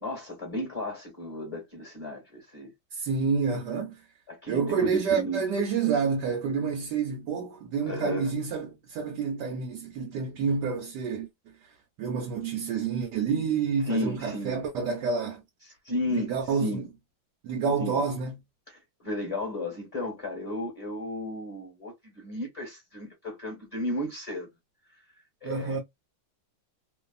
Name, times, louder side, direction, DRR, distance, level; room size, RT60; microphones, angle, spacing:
voice 1, 0.0-2.7 4.3-5.4 7.9-8.3 13.9-14.6 15.8-16.9 17.8-18.0 18.7-24.5 25.4-25.8, left 1 dB, 20° left, 1.1 m, -34 dB
voice 2, 2.9-3.9 4.5-11.3 11.6-11.7 12.0-15.4 16.1-16.8 17.4-18.4 25.4-25.8, right 5 dB, 70° right, 1.2 m, -28 dB
3.1 x 2.2 x 2.3 m
omnidirectional pair, 2.0 m